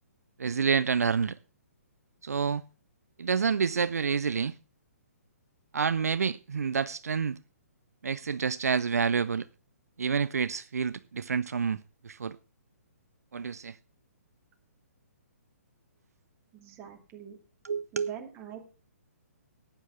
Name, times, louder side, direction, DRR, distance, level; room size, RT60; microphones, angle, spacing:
voice 1, 0.4-1.4 2.2-2.6 3.2-4.6 5.7-7.4 8.0-9.5 10.0-12.4 13.3-13.8 17.6-18.1, right 6 dB, 75° right, 0.5 m, -28 dB
voice 2, 16.5-17.4 17.9-18.6, right 10 dB, 25° right, 2.6 m, -44 dB
13.0 x 8.8 x 5.7 m
figure-of-eight pair, 130°, 9 cm